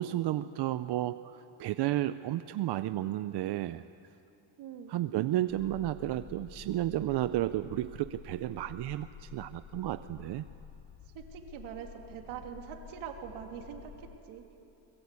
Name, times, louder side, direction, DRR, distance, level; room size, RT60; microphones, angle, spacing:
voice 1, 0.0-3.8 4.9-10.5, right 14 dB, 60° right, 12 dB, 0.6 m, -32 dB
voice 2, 4.6-4.9 11.1-14.4, right 8 dB, 80° right, 3 dB, 2.9 m, -43 dB
sound 1, 5.5-14.2, left 7 dB, 55° left, 1.4 m, -50 dB
23.5 x 21.5 x 8.3 m, 2.8 s
cardioid pair, 130°, 47 cm